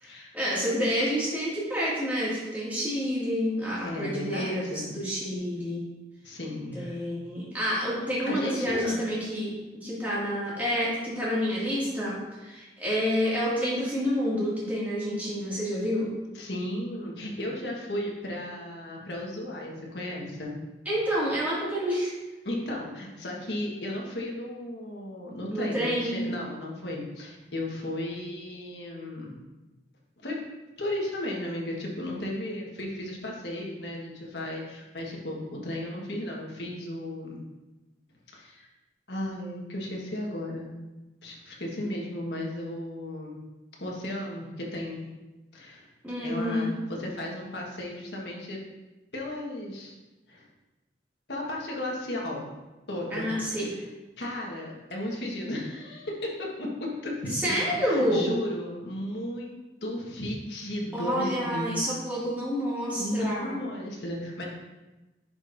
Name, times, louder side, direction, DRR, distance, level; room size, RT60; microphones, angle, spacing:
voice 1, 0.0-5.8 6.7-16.1 20.9-22.1 25.5-26.2 46.0-46.7 53.1-53.7 57.3-58.3 60.9-63.5, equal, 10° right, -8 dB, 2.3 m, -28 dB
voice 2, 3.8-4.9 6.2-7.0 8.2-9.1 16.3-20.6 22.4-29.3 30.2-30.5 30.8-37.4 38.3-38.7 39.1-40.8 41.2-43.4 43.8-45.1 45.5-45.9 46.2-48.6 49.1-49.9 50.3-50.5 51.3-52.5 52.9-53.3 54.2-59.5 59.8-61.8 62.1-62.3 62.9-64.4, left 1 dB, 65° left, -2 dB, 1.5 m, -35 dB
10.5 x 5.1 x 2.7 m, 1.1 s
head